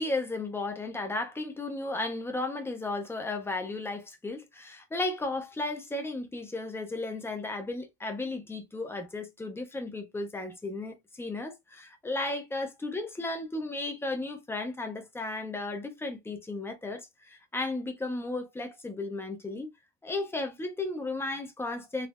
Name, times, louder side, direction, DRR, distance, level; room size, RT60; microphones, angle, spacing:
voice 1, 0.0-19.7 20.0-22.1, left 2 dB, 5° left, 0.4 m, -34 dB
3.5 x 3.0 x 2.3 m
cardioid pair, 170°, 35 cm